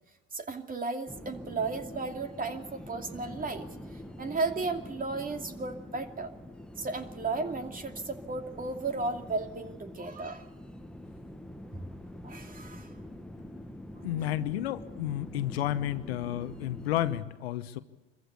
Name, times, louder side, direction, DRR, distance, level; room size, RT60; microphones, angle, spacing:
voice 1, 0.3-6.3 6.8-10.4 11.7-11.9 12.2-12.9, right 3 dB, 25° right, 6 dB, 2.6 m, -34 dB
sound 1, 1.1-17.2, left 1 dB, 5° left, 1.5 m, -45 dB
voice 2, 14.0-17.8, left 13 dB, 80° left, 13 dB, 1.1 m, -31 dB
25.0 x 15.0 x 8.4 m, 1.2 s
hypercardioid pair, 70°, 31 cm